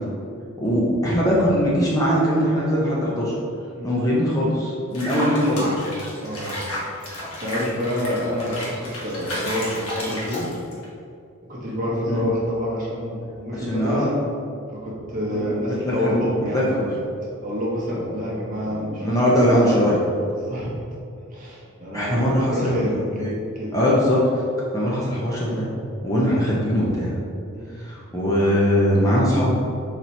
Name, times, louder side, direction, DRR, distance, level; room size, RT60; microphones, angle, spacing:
voice 1, 0.6-3.3 3.8-5.7 12.1-12.3 13.5-14.1 15.3-16.2 16.5-16.9 18.7-20.0 21.9-23.3 23.7-24.2 24.7-25.7 26.0-27.1 27.8-29.5, equal, 15° left, -6 dB, 0.6 m, -21 dB
Water / Bathtub (filling or washing), 4.9-10.9, equal, 80° left, 1.1 m, -32 dB
voice 2, 6.1-6.6 7.4-10.5 11.5-14.1 14.7-16.6 16.9-17.0 17.4-19.3 20.3-20.7 21.3-23.0 23.5-23.8 27.5-27.7, equal, 35° right, -5 dB, 1.0 m, -27 dB
4.0 x 3.0 x 4.3 m, 2.5 s
head